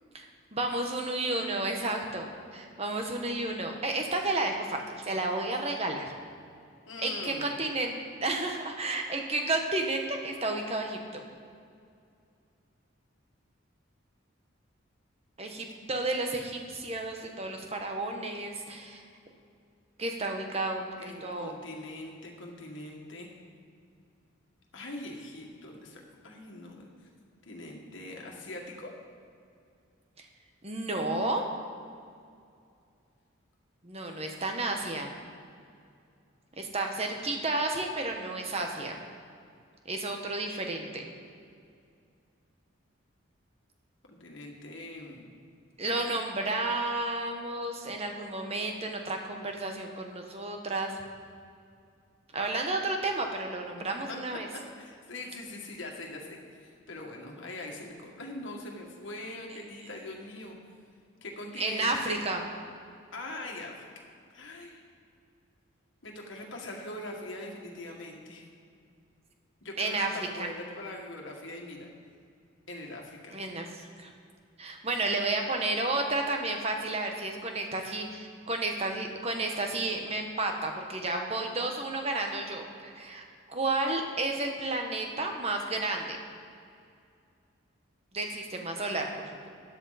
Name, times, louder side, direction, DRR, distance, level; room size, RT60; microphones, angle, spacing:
voice 1, 0.1-6.0 7.0-11.2 15.4-19.0 20.0-20.9 21.2-21.5 30.2-30.3 30.6-31.4 33.8-35.1 36.6-39.0 39.8-41.1 45.8-51.0 52.3-54.5 61.6-62.4 69.8-70.1 70.4-70.5 73.3-74.1 74.6-86.2 88.1-89.5, right 2 dB, 30° right, 3 dB, 1.2 m, -32 dB
voice 2, 6.9-7.5 21.0-23.3 24.7-26.9 27.4-28.9 44.1-45.3 54.1-54.2 54.5-60.6 61.2-62.2 63.1-64.8 66.0-68.5 69.6-71.9 72.7-73.4, left 2 dB, 65° left, 0 dB, 1.9 m, -42 dB
13.0 x 10.0 x 4.2 m, 2.4 s
head